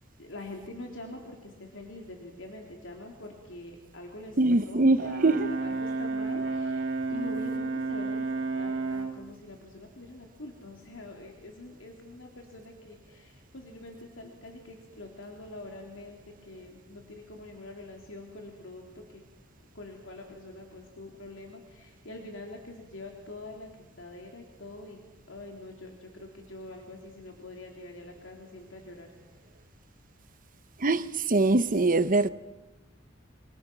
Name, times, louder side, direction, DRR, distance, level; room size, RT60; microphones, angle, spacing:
voice 1, 0.2-4.4 4.7-8.3 8.5-19.2 19.7-25.0 25.3-29.1, left 2 dB, 75° left, 3.4 m, -45 dB
voice 2, 4.4-5.5 30.8-32.3, right 2 dB, 45° right, 0.9 m, -23 dB
Brass instrument, 5.0-9.2, right 3 dB, 75° right, 2.3 m, -31 dB
28.0 x 27.5 x 6.2 m
head